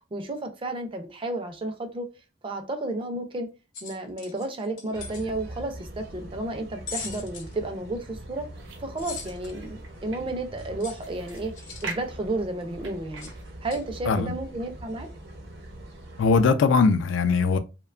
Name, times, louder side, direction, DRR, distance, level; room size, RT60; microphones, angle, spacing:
voice 1, 0.1-2.1 2.4-3.5 3.8-8.5 8.8-13.3 13.6-15.1, right 2 dB, 30° right, 0.4 m, -32 dB
sound 1, 3.7-5.2 6.9-7.5 9.0-9.5 10.8-11.9 13.2-13.3 13.6-13.8, left 5 dB, 90° left, 0.7 m, -39 dB
sound 2, 4.9-16.5, right 1 dB, 60° right, 0.7 m, -43 dB
sound 3, 7.4-13.4, right 3 dB, 90° right, 0.7 m, -44 dB
voice 2, 16.2-17.6, left 4 dB, 70° left, 0.3 m, -20 dB
2.7 x 2.1 x 2.4 m
head